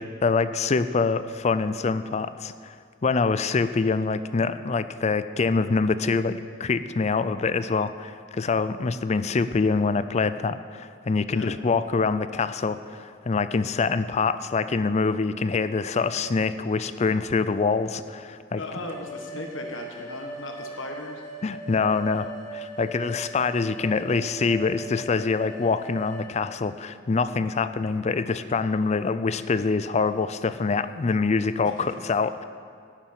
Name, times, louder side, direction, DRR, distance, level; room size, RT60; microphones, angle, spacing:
voice 1, 0.0-2.7 3.0-18.6 21.4-32.4, left 4 dB, 35° left, 13 dB, 0.4 m, -25 dB
voice 2, 18.5-21.2 31.6-31.9, left 2 dB, 75° left, 2 dB, 1.5 m, -37 dB
sound 1, 18.7-26.3, right 2 dB, 50° right, 3.9 m, -39 dB
11.0 x 7.3 x 8.7 m, 2.2 s
head